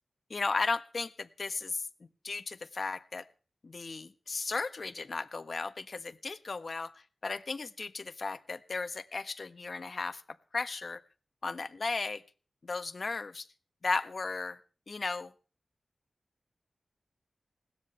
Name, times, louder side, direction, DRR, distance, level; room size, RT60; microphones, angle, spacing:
voice 1, 0.3-1.9 2.2-3.2 3.6-6.9 7.2-10.2 10.5-11.0 11.4-12.2 12.6-13.5 13.8-14.6 14.9-15.3, left 4 dB, 60° left, 11 dB, 1.4 m, -35 dB
21.0 x 16.5 x 3.3 m, 0.38 s
cardioid pair, 50°, 0 cm